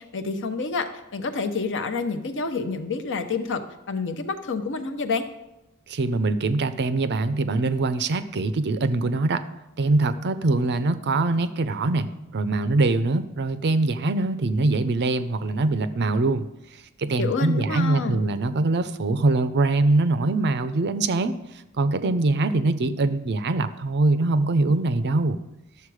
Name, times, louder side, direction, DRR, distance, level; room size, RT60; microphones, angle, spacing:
voice 1, 0.0-3.6 3.9-5.3 17.2-18.2, left 4 dB, 55° left, 8 dB, 0.8 m, -28 dB
voice 2, 5.9-9.5 9.8-16.4 17.0-21.4 21.8-25.4, right 2 dB, 50° right, 12 dB, 0.5 m, -23 dB
11.5 x 6.9 x 4.9 m, 0.92 s
head